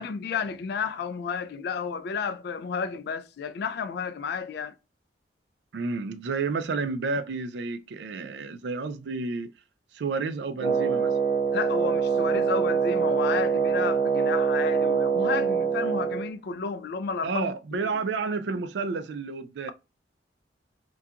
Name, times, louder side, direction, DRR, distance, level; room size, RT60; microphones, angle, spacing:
voice 1, 0.0-4.7 11.5-17.9, left 5 dB, 60° left, 0.3 m, -32 dB
voice 2, 5.7-9.5 9.9-11.1 17.2-19.7, right 4 dB, 70° right, 0.4 m, -30 dB
Wind instrument woodwind instrument, 10.6-16.3, right 6 dB, 10° right, 0.8 m, -24 dB
2.3 x 2.3 x 2.7 m
head